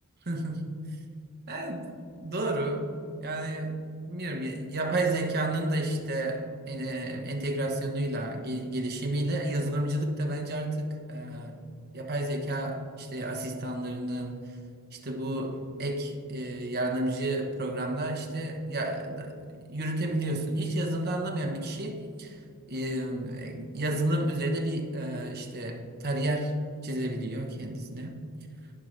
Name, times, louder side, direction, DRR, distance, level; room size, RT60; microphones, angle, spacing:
voice 1, 0.3-0.9 1.5-2.9 3.2-11.6 11.9-14.5 14.9-22.4 22.7-28.2, right 1 dB, 45° right, 3 dB, 1.0 m, -31 dB
15.0 x 5.0 x 3.3 m, 2.3 s
head